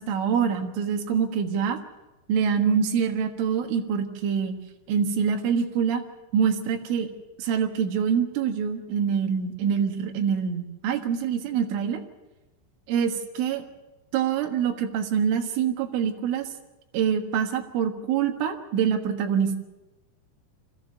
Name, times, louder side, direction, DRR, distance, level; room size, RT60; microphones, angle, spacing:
voice 1, 0.0-1.8 2.3-4.5 4.9-6.0 6.3-7.1 7.4-12.0 12.9-13.6 14.1-16.5 16.9-19.6, right 7 dB, 85° right, 5 dB, 4.1 m, -25 dB
22.5 x 14.5 x 9.2 m, 1.0 s
omnidirectional pair, 5.4 m